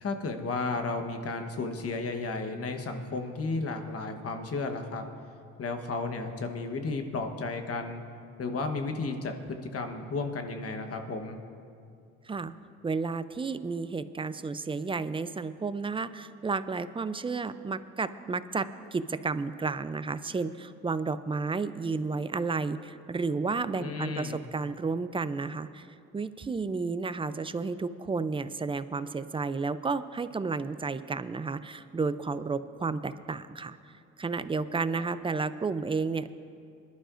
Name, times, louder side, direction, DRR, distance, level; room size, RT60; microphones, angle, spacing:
voice 1, 0.0-5.0 5.6-8.0 8.4-11.4 23.8-24.4, left 3 dB, 50° left, 6 dB, 1.2 m, -33 dB
voice 2, 12.8-25.9 26.1-33.8 34.2-36.3, right 4 dB, 20° right, 13 dB, 0.4 m, -32 dB
21.5 x 11.5 x 2.5 m, 2.4 s
cardioid pair, 90°, 30 cm